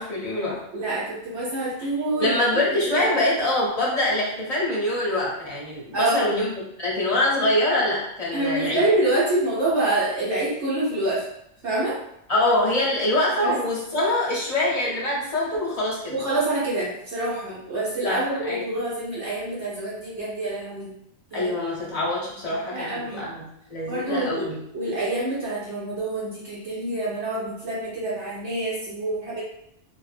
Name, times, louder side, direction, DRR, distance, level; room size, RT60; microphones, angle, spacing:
voice 1, 0.0-0.6 2.2-6.5 6.8-8.8 12.3-16.2 18.0-18.6 21.3-24.6, left 1 dB, 40° left, -5 dB, 0.6 m, -24 dB
voice 2, 0.7-2.4 3.0-3.1 5.9-6.3 8.3-11.2 11.6-12.0 13.4-13.5 16.1-20.9 21.3-21.5 22.5-23.3 23.9-24.5 24.7-29.4, right 2 dB, 70° right, -8 dB, 1.0 m, -26 dB
2.5 x 2.0 x 2.4 m, 0.78 s
omnidirectional pair, 1.3 m